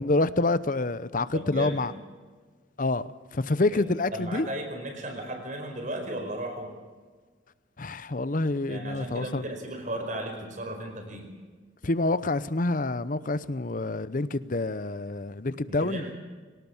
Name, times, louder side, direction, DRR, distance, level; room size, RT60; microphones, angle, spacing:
voice 1, 0.0-1.9 2.8-4.5 7.8-9.5 11.8-16.1, left 2 dB, 45° left, 0.7 m, -27 dB
voice 2, 1.3-1.9 3.7-3.9 4.1-6.7 8.7-11.3 15.7-16.2, right 1 dB, 40° right, 5.1 m, -35 dB
24.0 x 18.5 x 7.2 m
head